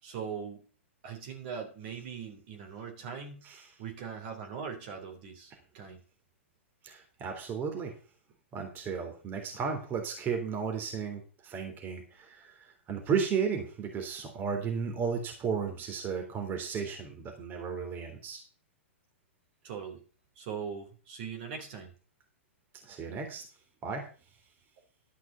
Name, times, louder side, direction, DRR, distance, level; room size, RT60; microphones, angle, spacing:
voice 1, 0.0-0.6 1.0-3.4 3.8-6.0 19.6-20.0 20.4-21.9, right 6 dB, 50° right, 4 dB, 3.7 m, -40 dB
voice 2, 6.8-7.9 8.5-18.4 22.8-23.4 23.8-24.1, right 6 dB, 25° right, 4 dB, 3.3 m, -34 dB
12.5 x 6.0 x 6.8 m, 0.39 s
hypercardioid pair, 115°, 7 cm